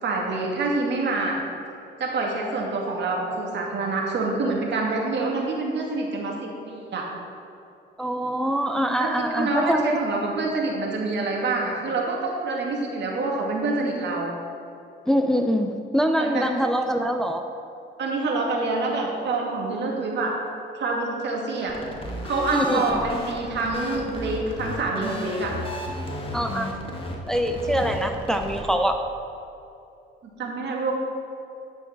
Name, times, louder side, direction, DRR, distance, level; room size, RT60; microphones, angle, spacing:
voice 1, 0.0-1.4 2.0-7.1 9.0-9.1 9.4-14.3 16.2-16.5 18.0-20.4 20.7-21.8 22.2-25.5 30.2-30.9, right 3 dB, 60° right, -1 dB, 2.4 m, -26 dB
voice 2, 8.0-10.0 15.1-17.4 22.5-22.8 26.3-26.7 27.3-29.0, equal, 5° left, 5 dB, 0.6 m, -24 dB
sound 1, 21.7-28.6, left 1 dB, 25° left, 1.7 m, -33 dB
10.5 x 6.1 x 6.0 m, 2.7 s
cardioid pair, 90°, 20 cm